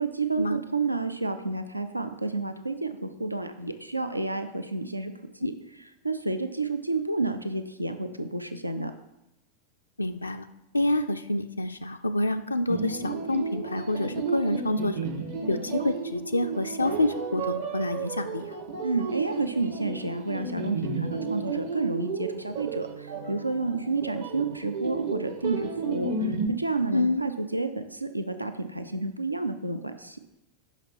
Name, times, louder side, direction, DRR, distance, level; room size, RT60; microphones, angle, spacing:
voice 1, 0.0-5.1 5.4-5.5 6.0-8.9 18.8-30.2, right 3 dB, 85° right, 9 dB, 0.5 m, -30 dB
voice 2, 10.0-10.5 10.7-15.0 15.5-18.6 26.9-27.2, left 1 dB, 80° left, 6 dB, 0.3 m, -27 dB
sound 1, 12.7-26.5, right 4 dB, 60° right, 1.1 m, -33 dB
5.7 x 5.7 x 5.8 m, 0.92 s
figure-of-eight pair, 90°, 0 cm